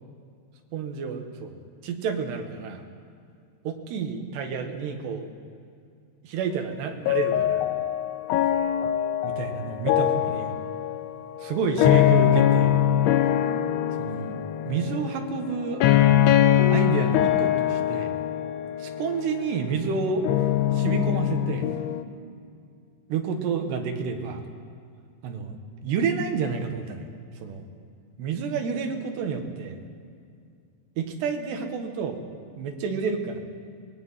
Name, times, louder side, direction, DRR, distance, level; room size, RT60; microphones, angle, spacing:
voice 1, 0.7-1.6 1.8-2.8 3.7-5.3 6.2-7.6 9.2-10.6 11.4-12.7 14.0-14.4 14.7-15.8 16.7-18.1 18.8-20.4 20.7-21.7 23.1-24.4 25.2-25.6 25.8-27.1 27.4-27.7 28.2-29.8 31.0-32.2 32.6-33.4, right 5 dB, 85° right, 4 dB, 3.8 m, -29 dB
sound 1, 7.1-22.0, left 11 dB, 90° left, 2.9 m, -23 dB
25.5 x 21.0 x 5.8 m, 2.3 s
omnidirectional pair, 4.7 m